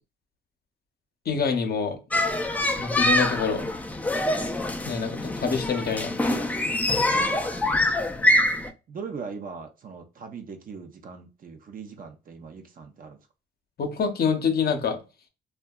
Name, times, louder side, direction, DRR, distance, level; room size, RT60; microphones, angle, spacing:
voice 1, 1.3-2.0 2.8-3.6 4.6-6.4 13.8-15.0, left 5 dB, 50° left, 0.7 m, -26 dB
sound 1, 2.1-8.7, left 1 dB, 10° left, 0.4 m, -25 dB
voice 2, 7.6-7.9 8.9-13.2, right 5 dB, 45° right, 0.6 m, -40 dB
2.7 x 2.3 x 2.3 m
cardioid pair, 90°, 20 cm